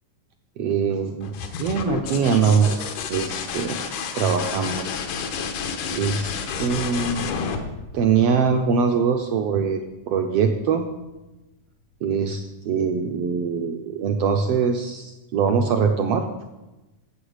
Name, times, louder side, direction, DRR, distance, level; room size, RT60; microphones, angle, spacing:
voice 1, 0.6-1.3 1.6-3.8 4.1-4.8 5.9-7.3 7.9-9.8 10.1-10.8 12.0-16.3, right 6 dB, 80° right, 5 dB, 1.3 m, -22 dB
sound 1, 1.2-8.8 10.6-11.1, left 6 dB, 90° left, 2.5 m, -30 dB
14.5 x 7.9 x 5.0 m, 1.0 s
omnidirectional pair, 3.5 m